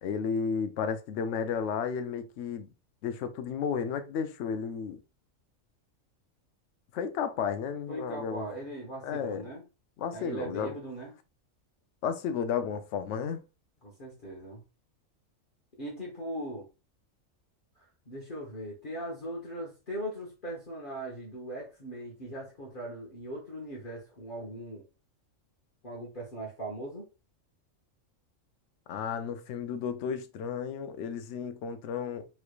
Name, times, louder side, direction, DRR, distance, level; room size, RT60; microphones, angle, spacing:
voice 1, 0.0-2.7 3.0-5.0 6.9-8.5 9.0-9.4 10.0-10.8 12.0-13.4 28.9-32.3, left 6 dB, 70° left, 0.8 m, -33 dB
voice 2, 7.9-9.6 10.1-11.1 13.8-14.6 15.8-16.7 18.1-24.8 25.8-27.1, right 1 dB, 45° left, 1.1 m, -39 dB
3.2 x 3.1 x 2.3 m
omnidirectional pair, 1.3 m